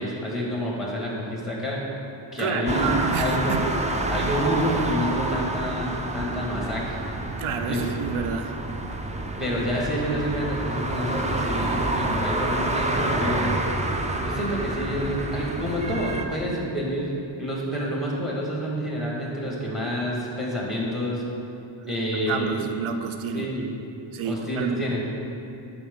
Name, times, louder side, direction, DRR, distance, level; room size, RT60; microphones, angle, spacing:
voice 1, 0.0-1.8 2.3-2.9 3.2-3.6 4.1-7.0 7.7-7.9 9.4-13.6 14.2-21.2 21.9-22.7 23.3-23.8 24.2-25.0, equal, ahead, -3 dB, 1.6 m, -28 dB
voice 2, 2.4-3.7 7.4-8.5 21.8-22.0 22.3-23.5 24.1-24.9, right 6 dB, 80° right, 7 dB, 0.6 m, -29 dB
sound 1, 2.7-16.2, right 2 dB, 15° right, 0.4 m, -28 dB
11.5 x 5.0 x 3.6 m, 2.6 s
wide cardioid pair, 135°, 48 cm